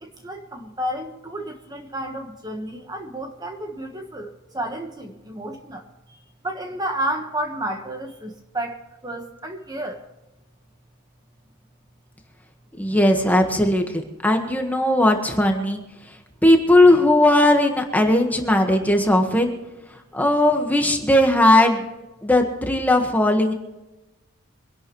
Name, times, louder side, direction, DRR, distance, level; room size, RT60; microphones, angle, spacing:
voice 1, 0.0-5.8 6.4-10.0, right 1 dB, 20° right, 3 dB, 1.4 m, -31 dB
voice 2, 12.8-15.8 16.4-19.5 20.1-21.8 22.2-23.5, left 1 dB, 10° left, 3 dB, 1.5 m, -18 dB
24.5 x 11.5 x 3.2 m, 1.0 s
head